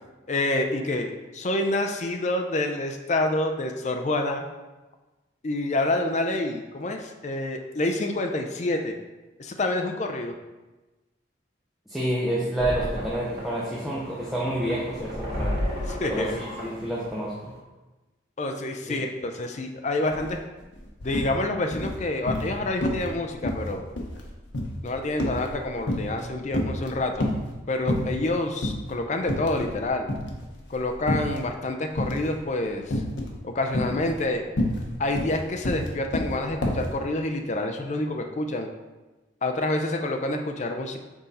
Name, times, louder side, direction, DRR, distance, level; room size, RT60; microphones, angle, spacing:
voice 1, 0.3-4.4 5.4-9.0 9.4-10.3 15.9-16.4 18.4-20.4 21.0-23.8 24.8-27.3 27.7-30.1 30.7-33.0 33.4-34.4 35.0-38.7 39.4-41.0, left 2 dB, 40° left, 4 dB, 0.4 m, -27 dB
voice 2, 11.9-15.5 16.1-17.5 18.9-19.0, right 1 dB, ahead, -7 dB, 0.7 m, -29 dB
sound 1, 12.6-17.6, equal, 60° right, 2.0 m, -33 dB
sound 2, 20.1-20.3 20.6-21.3 21.7-22.5 22.8-23.1 23.4-26.2 26.5-27.5 27.9-28.3 28.6-28.8 29.2-29.8 30.1-31.4 32.0-32.4 32.9-33.4 33.7-36.9, left 1 dB, 75° left, 0.9 m, -28 dB
6.1 x 3.9 x 4.1 m, 1.1 s
head